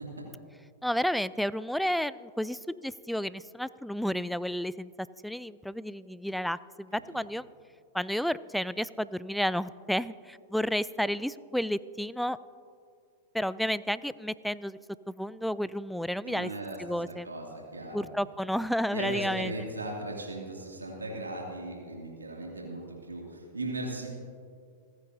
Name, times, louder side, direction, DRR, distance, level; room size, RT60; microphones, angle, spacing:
voice 1, 0.8-4.9 5.2-7.5 7.9-12.4 13.3-14.8 15.1-16.5 16.8-17.3 17.9-19.7, equal, ahead, 18 dB, 0.3 m, -31 dB
voice 2, 16.2-16.8 17.2-17.4 17.7-18.0 18.9-24.1, right 2 dB, 90° right, -2 dB, 2.4 m, -37 dB
29.0 x 9.6 x 2.7 m, 2.3 s
hypercardioid pair, 100°, 0 cm